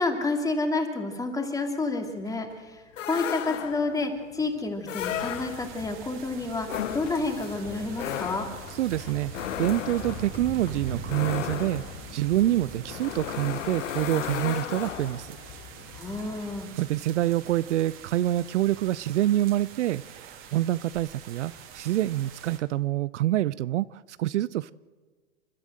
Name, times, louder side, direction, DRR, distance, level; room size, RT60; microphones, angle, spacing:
voice 1, 0.0-8.5 15.9-16.7, left 3 dB, 10° left, 4 dB, 2.6 m, -29 dB
sound 1, 1.7-16.7, left 8 dB, 50° left, 2.4 m, -50 dB
sound 2, 3.0-4.0 4.8-5.9 6.6-15.4, left 11 dB, 80° left, 0.7 m, -35 dB
sound 3, 5.0-22.6, right 5 dB, 35° right, 2.6 m, -43 dB
voice 2, 8.8-15.4 16.8-24.7, right 14 dB, 70° right, 19 dB, 0.5 m, -27 dB
29.0 x 12.5 x 7.7 m, 1.4 s
hypercardioid pair, 120°, 37 cm